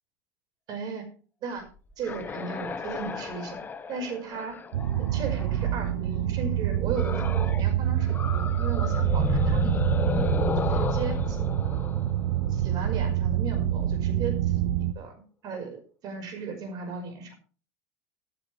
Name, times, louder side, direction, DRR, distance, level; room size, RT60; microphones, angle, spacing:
voice 1, 0.7-1.1 1.4-1.7 2.0-3.6 3.9-4.6 5.0-11.2 11.6-11.9 12.5-14.6 15.0-15.2 15.4-17.3, right 5 dB, 45° right, 6 dB, 5.3 m, -36 dB
sound 1, 1.7-5.8 6.9-7.7 8.0-12.9, left 4 dB, 20° left, 1.4 m, -32 dB
sound 2, 4.7-14.9, right 11 dB, 90° right, 0.9 m, -26 dB
14.5 x 11.5 x 3.4 m, 0.37 s
supercardioid pair, 125°, 9 cm